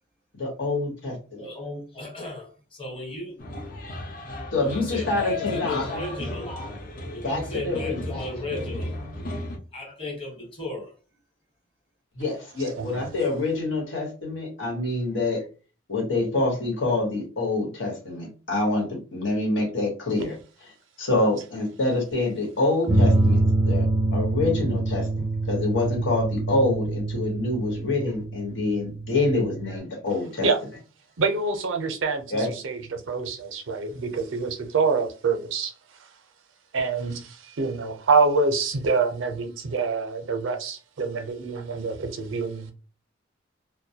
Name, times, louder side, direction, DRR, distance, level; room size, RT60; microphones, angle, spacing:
voice 1, 0.3-1.5 4.5-5.9 7.2-8.0 12.1-15.4 15.9-20.3 20.6-20.7 21.0-23.4 23.6-23.9 24.1-30.5 32.3-32.5, left 2 dB, 80° left, 1.1 m, -26 dB
voice 2, 1.4-3.4 4.6-6.7 7.1-9.0 9.7-11.0, left 2 dB, 30° left, 1.0 m, -35 dB
sound 1, 3.4-9.6, left 2 dB, 45° left, 0.5 m, -35 dB
voice 3, 12.8-13.1 30.4-30.6 31.2-35.7 36.7-42.7, right 4 dB, 90° right, 0.5 m, -26 dB
sound 2, 22.9-29.8, right 2 dB, 25° right, 0.4 m, -25 dB
2.2 x 2.0 x 2.7 m
head